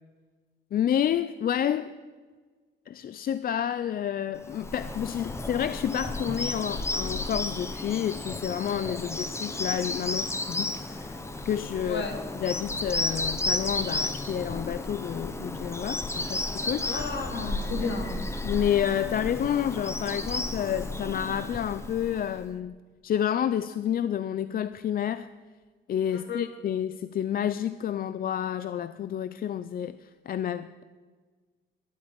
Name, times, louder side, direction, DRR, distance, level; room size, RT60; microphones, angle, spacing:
voice 1, 0.7-1.9 2.9-12.0 12.4-17.0 17.8-17.9 18.4-22.8 23.0-25.3 25.9-30.8, left 10 dB, 50° left, 14 dB, 0.4 m, -29 dB
Bird vocalization bird call bird song, 4.4-22.4, left 2 dB, 15° left, 0.9 m, -33 dB
voice 2, 16.8-18.3 26.1-26.4, left 4 dB, 65° left, 4 dB, 2.3 m, -33 dB
12.5 x 8.4 x 8.8 m, 1.4 s
cardioid pair, 145°, 20 cm